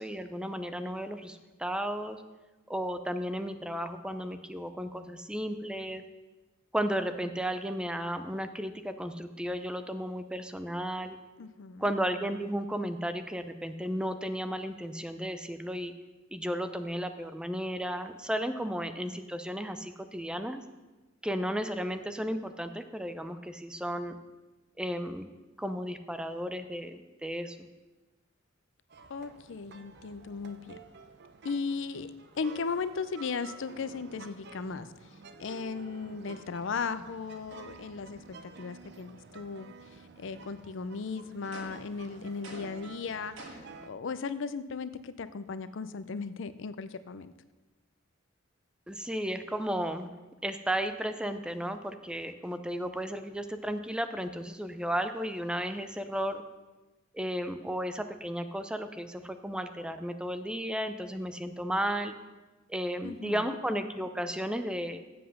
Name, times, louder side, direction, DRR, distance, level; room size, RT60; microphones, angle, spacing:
voice 1, 0.0-2.2 2.7-6.0 6.7-11.2 11.8-15.9 16.3-20.6 21.2-24.2 24.8-25.3 25.6-27.7 48.9-50.1 50.4-56.4 57.1-62.1 62.7-65.0, equal, 5° right, 9 dB, 0.5 m, -34 dB
voice 2, 11.4-11.9 29.1-30.8 31.4-34.9 35.4-39.7 40.2-43.6 43.9-47.3 63.0-63.6, left 5 dB, 70° left, 14 dB, 0.5 m, -36 dB
sound 1, 28.9-43.9, right 4 dB, 60° right, 0.7 m, -51 dB
sound 2, 41.5-42.0 42.4-42.9 43.4-43.8, right 2 dB, 90° right, 2.1 m, -46 dB
7.8 x 7.7 x 6.5 m, 1.2 s
head